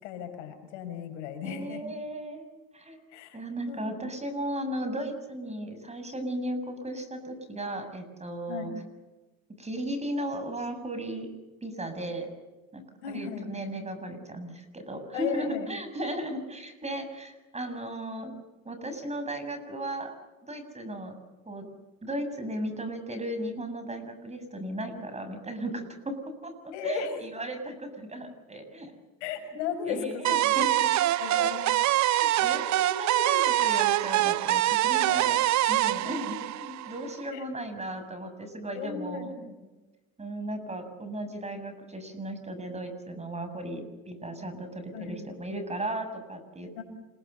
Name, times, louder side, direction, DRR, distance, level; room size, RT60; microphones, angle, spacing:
voice 1, 0.0-1.8 3.1-3.4 3.7-3.9 8.5-8.7 13.0-13.5 15.1-15.7 26.7-27.1 29.2-30.5 31.2-31.7 36.0-36.2 37.3-37.4 38.7-39.6 44.9-45.2 46.7-46.8, left 7 dB, 85° left, 5 dB, 6.4 m, -35 dB
voice 2, 1.4-2.5 2.7-3.0 3.3-8.7 9.6-11.3 11.6-12.3 12.7-18.3 18.7-20.1 20.4-21.2 21.5-21.7 22.0-26.2 26.4-28.9 29.8-30.9 31.2-31.5 32.0-35.4 35.7-39.3 40.2-46.8, right 1 dB, 20° right, 8 dB, 7.1 m, -36 dB
sound 1, 30.2-37.2, right 14 dB, 50° right, 0.8 m, -25 dB
28.5 x 22.0 x 7.0 m, 1.1 s
supercardioid pair, 85°, 35 cm